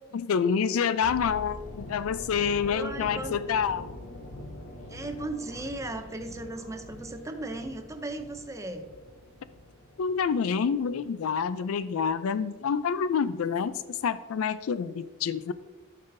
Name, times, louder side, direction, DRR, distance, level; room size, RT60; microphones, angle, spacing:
voice 1, 0.1-3.9 10.0-15.5, left 6 dB, 70° left, 14 dB, 0.4 m, -27 dB
sound 1, 1.0-11.0 11.3-11.5, left 1 dB, 85° left, 1.4 m, -44 dB
voice 2, 2.7-3.4 4.9-8.9, right 2 dB, 15° right, 7 dB, 0.5 m, -36 dB
11.5 x 5.4 x 2.6 m, 1.2 s
head